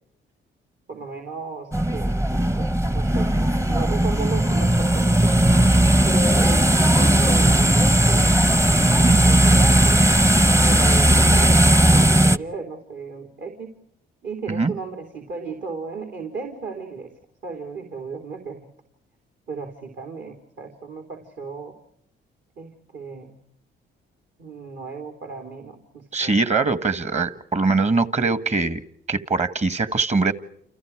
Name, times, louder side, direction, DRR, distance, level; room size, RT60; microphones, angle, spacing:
voice 1, 0.9-2.1 2.6-5.5 6.1-8.3 9.0-13.8 14.2-17.1 17.4-18.7 19.5-21.7 22.6-23.4 24.4-26.3, right 4 dB, 65° right, 4 dB, 3.7 m, -35 dB
sound 1, 1.7-12.4, right 1 dB, 15° right, 0.9 m, -17 dB
voice 2, 26.1-28.8 29.1-30.3, right 3 dB, 35° right, 13 dB, 1.6 m, -22 dB
29.0 x 29.0 x 4.8 m, 0.71 s
cardioid pair, 90°, 20 cm